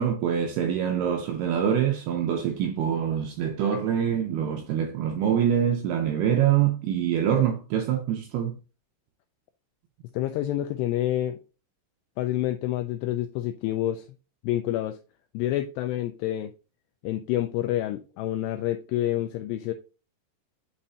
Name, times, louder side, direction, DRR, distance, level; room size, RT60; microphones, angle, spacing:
voice 1, 0.0-8.6, right 9 dB, 80° right, 2.3 m, -25 dB
voice 2, 10.1-11.4 12.2-14.1 14.4-15.0 15.3-16.5 17.0-19.7, left 13 dB, 85° left, 2.4 m, -28 dB
8.8 x 4.2 x 2.7 m
omnidirectional pair, 5.3 m